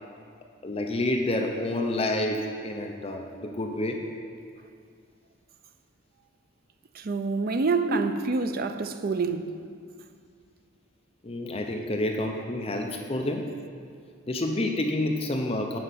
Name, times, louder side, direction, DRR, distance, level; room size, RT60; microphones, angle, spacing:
voice 1, 0.6-4.0 7.9-8.0 11.2-13.5 14.3-15.8, left 1 dB, 30° left, 0.6 m, -28 dB
voice 2, 6.9-9.5, right 4 dB, 45° right, 0.5 m, -27 dB
9.9 x 5.1 x 6.8 m
head